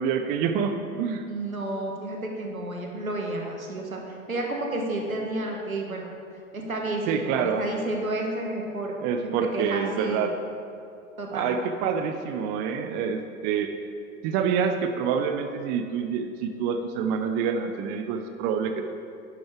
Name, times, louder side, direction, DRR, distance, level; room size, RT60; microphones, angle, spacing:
voice 1, 0.0-1.2 7.1-7.6 9.0-10.3 11.3-13.7 14.2-18.8, right 6 dB, 25° right, 6 dB, 0.5 m, -27 dB
voice 2, 1.3-6.1 6.5-8.9 9.2-10.3 11.2-11.6, right 1 dB, 80° right, 0 dB, 1.9 m, -31 dB
11.5 x 10.5 x 3.6 m, 2.5 s
figure-of-eight pair, 95°, 41 cm